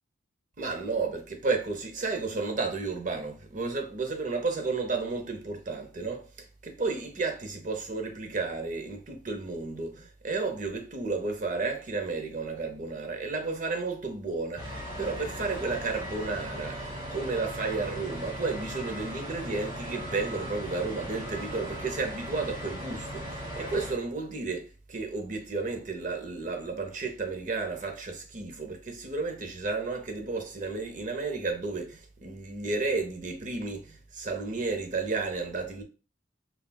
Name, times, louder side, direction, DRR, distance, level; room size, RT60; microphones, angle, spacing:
voice 1, 0.6-35.8, right 3 dB, 40° right, 0.6 m, -32 dB
sound 1, 14.6-23.9, equal, 20° right, 1.2 m, -38 dB
5.6 x 2.3 x 2.2 m
head